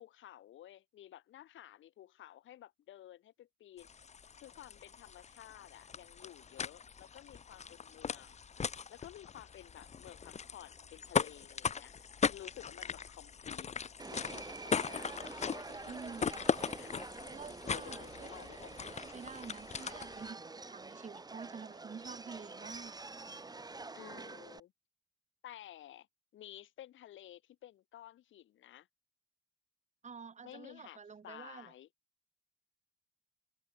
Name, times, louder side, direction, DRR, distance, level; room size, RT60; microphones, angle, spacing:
voice 1, 0.0-3.9 4.4-8.4 8.9-13.7 14.0-16.3 16.7-16.9 17.6-18.7 23.9-24.7 25.4-26.1 26.3-28.9 30.4-31.0 31.2-31.9, left 12 dB, 75° left, 3.1 m, -53 dB
sound 1, 3.8-20.3, left 6 dB, 35° left, 0.9 m, -39 dB
Subway metro underground, 14.0-24.6, right 3 dB, 20° right, 1.8 m, -47 dB
voice 2, 15.9-16.4 17.3-18.3 19.0-23.0 30.0-31.7, right 5 dB, 35° right, 2.2 m, -48 dB
open air
cardioid pair, 90°, 20 cm